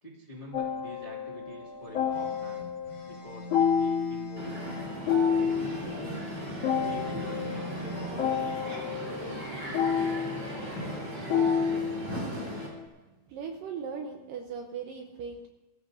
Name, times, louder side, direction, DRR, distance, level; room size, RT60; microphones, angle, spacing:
voice 1, 0.0-2.7 3.0-4.5 5.6-6.2 6.8-8.2 8.8-11.3, equal, 80° left, -3 dB, 0.4 m, -47 dB
sound 1, 0.5-12.8, left 7 dB, 55° left, 3.2 m, -30 dB
sound 2, 2.1-4.9 5.3-8.1, equal, 15° left, 4.5 m, -42 dB
Crowd, 4.4-12.7, right 1 dB, 35° right, 4.3 m, -37 dB
voice 2, 13.3-15.5, right 6 dB, 80° right, 3 dB, 2.1 m, -38 dB
22.0 x 14.0 x 2.6 m, 1.1 s
omnidirectional pair, 4.8 m